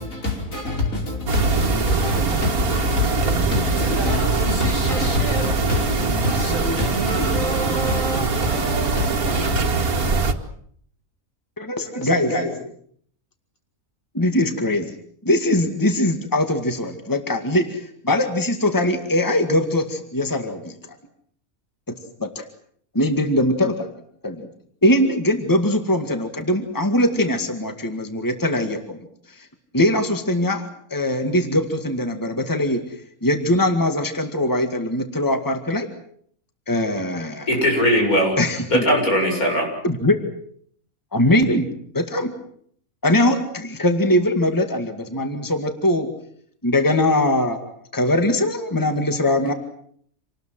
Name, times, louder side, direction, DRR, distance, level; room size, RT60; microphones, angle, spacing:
voice 1, 0.0-9.9 11.8-12.6, left 1 dB, 65° left, 5.9 m, -27 dB
sound 1, 1.3-10.3, right 4 dB, 90° right, 2.2 m, -22 dB
voice 2, 11.6-12.3 14.1-14.9 15.2-20.8 22.2-22.5 22.9-23.9 24.2-24.5 24.8-29.0 29.3-29.5 29.7-32.8 33.2-35.9 36.7-37.5 38.4-38.8 39.8-40.2 41.1-41.7 41.9-42.3 43.0-46.1 46.6-49.5, left 1 dB, 15° left, 2.1 m, -21 dB
voice 3, 37.5-38.4 38.7-39.7, equal, 80° left, 7.8 m, -19 dB
27.5 x 20.0 x 7.7 m
omnidirectional pair, 1.5 m